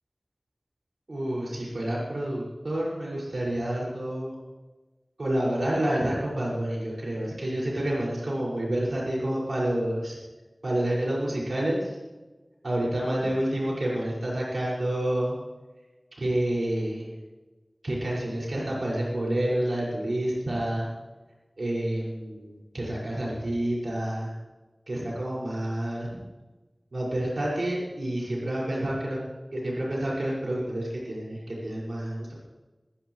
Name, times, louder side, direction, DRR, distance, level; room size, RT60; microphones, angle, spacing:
voice 1, 1.1-4.4 5.2-10.2 10.6-12.0 12.6-15.4 16.2-17.1 17.8-20.9 21.6-24.3 24.9-26.2 26.9-29.2 29.5-32.3, right 1 dB, 90° right, -5 dB, 5.9 m, -29 dB
25.0 x 16.0 x 3.3 m, 1.2 s
wide cardioid pair, 55°, 0 cm